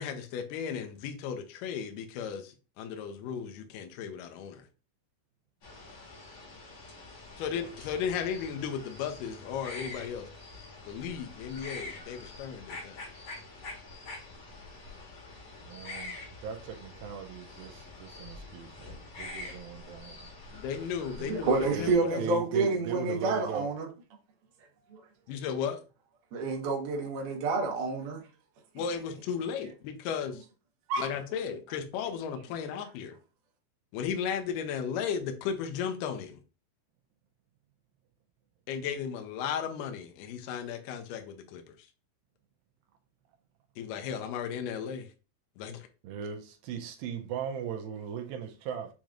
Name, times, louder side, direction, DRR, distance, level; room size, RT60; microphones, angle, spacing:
voice 1, 0.0-4.6 7.4-10.3 10.9-13.0 19.4-19.5 20.5-22.2 25.3-25.8 28.8-30.4 31.0-33.2 33.9-36.4 38.7-41.6 43.8-45.1 45.6-45.9, left 7 dB, 75° left, 2.1 m, -35 dB
sound 1, 5.6-21.9, left 3 dB, 50° left, 2.4 m, -46 dB
voice 2, 15.7-20.3 21.7-23.7 46.0-48.9, right 7 dB, 80° right, 2.5 m, -39 dB
voice 3, 21.2-23.9 24.9-25.0 26.3-28.2 30.9-31.1, right 3 dB, 65° right, 2.4 m, -29 dB
7.1 x 3.1 x 2.5 m
omnidirectional pair, 4.3 m